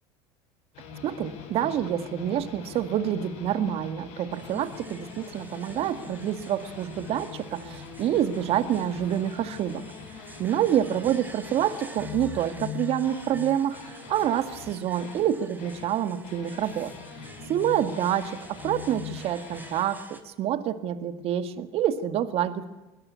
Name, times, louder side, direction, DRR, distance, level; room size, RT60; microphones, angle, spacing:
sound 1, 0.7-15.9 16.2-19.8, left 6 dB, 65° left, 7.3 m, -42 dB
voice 1, 1.0-9.8 10.4-16.9 17.5-22.7, right 10 dB, 55° right, 12 dB, 1.9 m, -27 dB
sound 2, 4.3-20.2, right 2 dB, 15° right, 3.7 m, -49 dB
22.5 x 17.5 x 8.4 m, 1.1 s
supercardioid pair, 90°, 12 cm